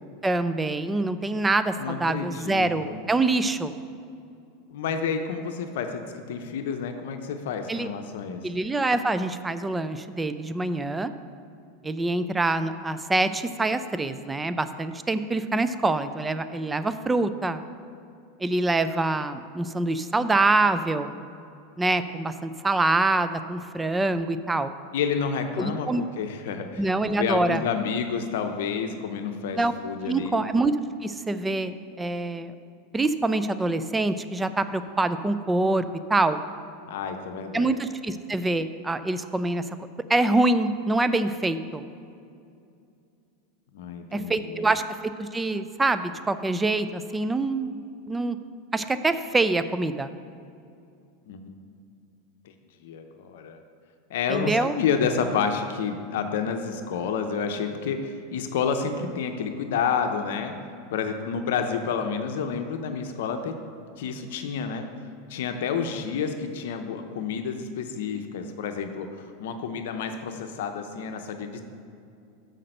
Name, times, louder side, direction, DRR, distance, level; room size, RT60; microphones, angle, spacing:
voice 1, 0.2-3.7 7.7-7.9 8.4-11.1 11.8-17.6 18.4-21.1 21.8-24.7 25.6-26.0 26.8-27.6 29.5-29.7 30.0-30.8 31.0-32.5 32.9-36.4 37.5-39.7 40.1-41.8 44.1-47.7 48.1-48.4 48.7-50.1 54.3-54.7, right 2 dB, 15° right, 11 dB, 0.4 m, -25 dB
voice 2, 1.8-2.9 4.7-8.4 24.9-30.4 36.9-37.7 43.7-44.7 51.3-51.6 52.8-53.6 54.1-60.5 60.9-63.5 64.0-64.9 65.3-71.6, left 6 dB, 70° left, 6 dB, 0.7 m, -29 dB
6.5 x 5.8 x 6.5 m, 2.5 s
hypercardioid pair, 95°, 0 cm